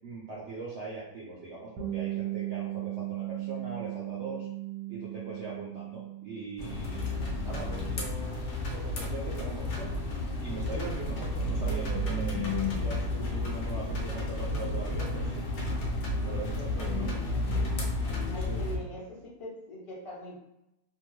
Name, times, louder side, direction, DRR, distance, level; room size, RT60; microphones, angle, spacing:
voice 1, 0.0-4.5 4.9-9.9 10.4-15.4 16.2-17.2 18.2-18.6 18.9-19.0, right 3 dB, 65° right, -5 dB, 0.7 m, -41 dB
Bass guitar, 1.8-8.0, right 16 dB, 80° right, 1.1 m, -37 dB
sound 1, 6.6-18.8, left 1 dB, 60° left, 0.8 m, -32 dB
sound 2, 11.5-18.3, left 6 dB, 80° left, 1.1 m, -39 dB
voice 2, 16.8-17.5 18.3-20.4, left 1 dB, 30° left, -5 dB, 0.6 m, -43 dB
2.8 x 2.2 x 3.1 m, 0.87 s
omnidirectional pair, 1.8 m